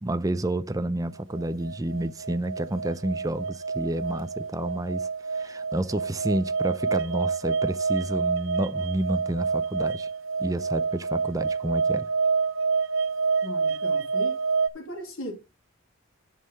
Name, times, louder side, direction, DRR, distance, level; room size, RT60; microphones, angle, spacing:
voice 1, 0.0-10.1 10.4-12.1, right 1 dB, 15° right, 0.5 m, -30 dB
sound 1, 1.3-14.7, right 5 dB, 70° right, 0.7 m, -28 dB
voice 2, 13.4-14.4 14.7-15.3, left 1 dB, 85° left, 3.6 m, -37 dB
9.5 x 5.6 x 4.1 m
head